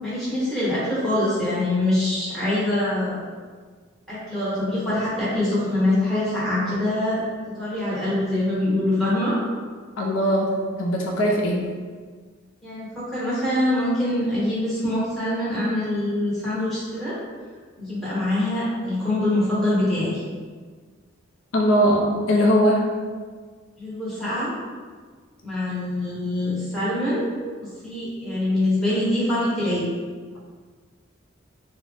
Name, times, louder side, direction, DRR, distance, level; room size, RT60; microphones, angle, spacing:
voice 1, 0.0-3.2 4.1-7.2 7.5-9.4 12.6-17.2 17.8-20.2 23.8-24.5 25.4-27.3 27.6-29.9, left 1 dB, ahead, -11 dB, 1.1 m, -24 dB
voice 2, 10.0-10.5 10.8-11.6 21.5-22.8, equal, 75° left, -1 dB, 0.5 m, -20 dB
3.8 x 2.1 x 3.2 m, 1.6 s
head